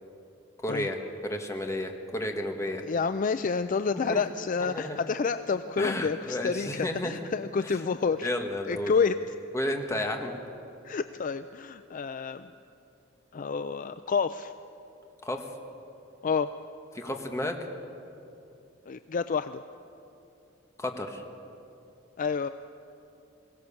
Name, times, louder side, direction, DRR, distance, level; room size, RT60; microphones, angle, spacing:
voice 1, 0.6-1.0 1.2-2.8 3.9-4.2 4.6-5.0 5.8-7.1 8.2-8.9 9.5-10.4 15.2-15.5 16.9-17.6 20.8-21.2, left 1 dB, 15° left, 3 dB, 1.6 m, -32 dB
voice 2, 2.8-8.3 8.7-9.2 10.8-12.5 13.3-14.5 16.2-16.5 18.9-19.6 22.2-22.5, left 5 dB, 45° left, 11 dB, 0.4 m, -29 dB
22.5 x 17.0 x 7.1 m, 2.7 s
head